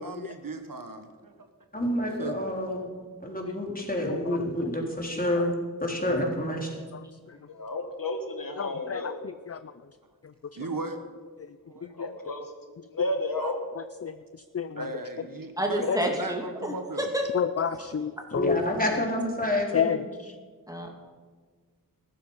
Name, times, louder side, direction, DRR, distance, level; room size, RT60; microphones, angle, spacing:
voice 1, 0.0-1.3 2.2-2.3 10.5-11.0 11.6-11.9 13.4-13.5 14.7-17.1, right 3 dB, 70° right, 6 dB, 1.5 m, -36 dB
voice 2, 1.7-2.9 3.2-5.5 5.8-6.7 18.3-20.0, left 1 dB, 25° left, -1 dB, 3.7 m, -28 dB
voice 3, 7.5-9.2 11.9-12.4 12.9-13.6, left 2 dB, 65° left, 5 dB, 1.7 m, -32 dB
voice 4, 8.6-9.6 12.0-12.1 14.0-14.1 14.5-14.8 15.9-16.0 17.3-18.6 19.7-20.3, left 7 dB, 45° left, 12 dB, 0.5 m, -29 dB
voice 5, 15.6-17.2 20.7-20.9, equal, 10° right, 2 dB, 2.6 m, -29 dB
14.5 x 12.5 x 5.6 m, 1.5 s
wide cardioid pair, 45°, 36 cm